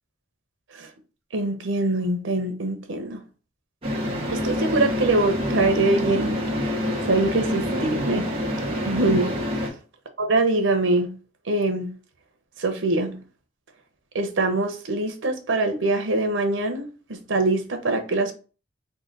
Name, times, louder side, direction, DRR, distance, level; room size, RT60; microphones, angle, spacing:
voice 1, 1.3-3.2 4.3-6.8 7.1-8.3 8.8-9.3 10.2-11.1 11.4-11.9 12.6-13.2 14.1-18.3, right 2 dB, 85° right, 0.8 m, -23 dB
sound 1, 3.8-9.7, equal, 30° right, 1.1 m, -27 dB
3.8 x 2.2 x 3.8 m
head